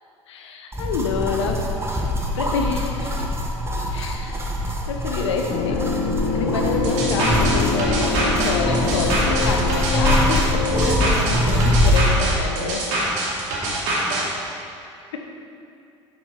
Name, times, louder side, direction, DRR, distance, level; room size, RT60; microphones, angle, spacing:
voice 1, 0.3-2.1 2.3-3.3 3.9-4.4 4.7-5.8 6.3-12.9 15.1-15.2, left 4 dB, 70° left, 3 dB, 0.9 m, -28 dB
sound 1, 0.7-12.1, left 1 dB, 15° right, 1.2 m, -23 dB
sound 2, 5.5-11.2, left 4 dB, 40° left, 0.8 m, -25 dB
sound 3, 6.8-14.2, right 1 dB, 55° right, 2.1 m, -24 dB
8.9 x 6.0 x 4.8 m, 2.5 s
figure-of-eight pair, 65°, 15 cm